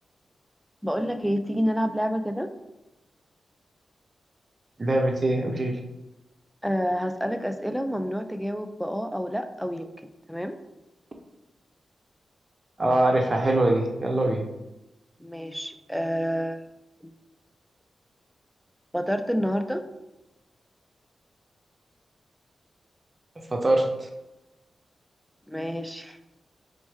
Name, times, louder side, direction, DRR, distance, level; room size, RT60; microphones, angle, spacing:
voice 1, 0.8-2.5 6.6-9.9 10.3-10.6 15.2-16.6 17.0-17.1 18.9-19.8 25.5-26.2, equal, ahead, 7 dB, 0.3 m, -28 dB
voice 2, 4.8-5.8 12.8-14.4 23.4-24.1, right 1 dB, 40° right, 2 dB, 0.6 m, -23 dB
4.3 x 2.1 x 3.1 m, 0.98 s
supercardioid pair, 45°, 0 cm